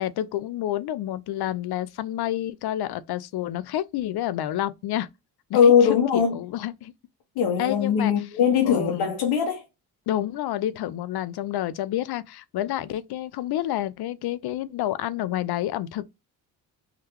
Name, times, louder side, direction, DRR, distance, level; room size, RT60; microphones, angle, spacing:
voice 1, 0.0-5.1 5.5-6.9 7.6-8.1 8.6-9.1 10.1-16.0, left 13 dB, 55° left, 0.5 m, -29 dB
voice 2, 5.5-6.4 7.4-9.6, left 7 dB, 75° left, 0.9 m, -20 dB
3.7 x 2.2 x 2.9 m
supercardioid pair, 65°, 46 cm